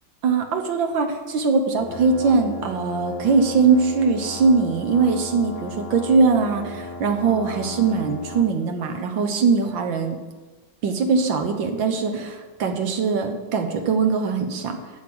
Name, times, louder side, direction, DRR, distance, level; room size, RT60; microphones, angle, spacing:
voice 1, 0.2-10.2 10.8-14.8, right 4 dB, 85° right, 5 dB, 1.9 m, -21 dB
sound 1, 1.8-8.5, left 2 dB, 65° left, 2.6 m, -36 dB
12.5 x 7.6 x 6.1 m, 1.3 s
omnidirectional pair, 2.0 m